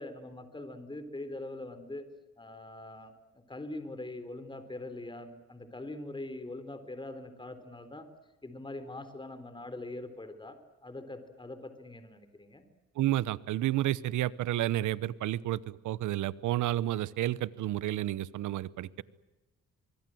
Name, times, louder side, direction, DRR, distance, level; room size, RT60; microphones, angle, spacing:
voice 1, 0.0-2.0 2.4-3.1 3.5-8.1 8.4-10.6 10.8-12.6, left 2 dB, 15° left, 10 dB, 3.8 m, -42 dB
voice 2, 13.0-19.0, right 14 dB, 80° right, 19 dB, 1.0 m, -31 dB
24.5 x 23.5 x 7.8 m, 1.1 s
cardioid pair, 90°, 30 cm